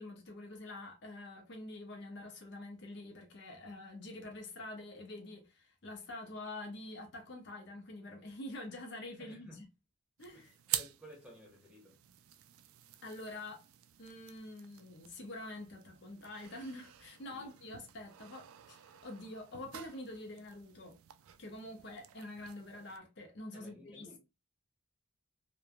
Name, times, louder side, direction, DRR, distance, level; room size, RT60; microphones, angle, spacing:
voice 1, 0.0-9.7 10.2-10.5 13.0-13.7 14.0-21.0 21.4-24.2, left 2 dB, 55° left, 0.6 m, -46 dB
voice 2, 9.2-9.6 10.3-12.0 17.3-17.5 23.5-24.2, equal, 5° right, 1.0 m, -55 dB
sound 1, 10.2-23.0, right 12 dB, 80° right, 0.3 m, -47 dB
3.0 x 2.1 x 2.4 m
head